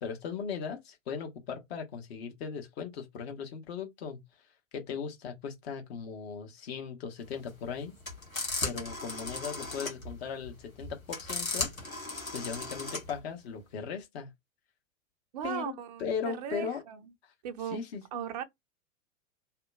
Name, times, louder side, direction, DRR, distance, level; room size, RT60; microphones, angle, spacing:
voice 1, 0.0-4.2 4.7-7.9 8.6-11.7 12.3-14.3 15.4-15.7 16.0-16.8 17.2-17.3 17.7-18.0, left 6 dB, 50° left, 1.0 m, -38 dB
sound 1, 7.3-13.2, left 2 dB, 90° left, 1.0 m, -36 dB
voice 2, 15.3-17.0 17.4-17.8 18.1-18.4, right 9 dB, 35° right, 0.4 m, -37 dB
2.7 x 2.1 x 2.3 m
figure-of-eight pair, 95°, 40 cm